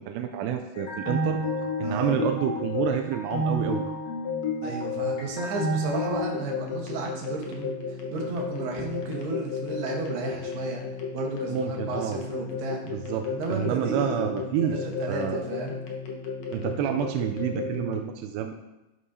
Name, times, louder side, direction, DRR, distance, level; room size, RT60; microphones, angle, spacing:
voice 1, 0.0-1.4 1.8-3.9 11.5-12.2 12.8-15.5 16.5-18.5, right 9 dB, 90° right, 5 dB, 2.7 m, -29 dB
sound 1, 0.7-18.0, left 3 dB, 70° left, 1.6 m, -32 dB
voice 2, 1.8-2.2 4.6-10.8 11.1-12.8 13.3-15.8, right 3 dB, 75° right, 0 dB, 3.2 m, -33 dB
11.0 x 7.2 x 2.7 m, 0.98 s
omnidirectional pair, 4.8 m